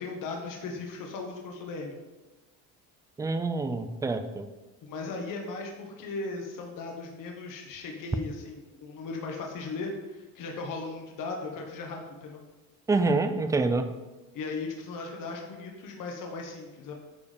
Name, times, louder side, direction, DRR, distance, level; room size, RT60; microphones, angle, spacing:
voice 1, 0.0-2.0 4.8-12.4 14.3-16.9, left 3 dB, 50° left, 1 dB, 1.6 m, -37 dB
voice 2, 3.2-4.5 12.9-13.9, right 3 dB, 10° right, 8 dB, 0.3 m, -26 dB
9.7 x 4.9 x 5.2 m, 1.1 s
cardioid pair, 145°, 41 cm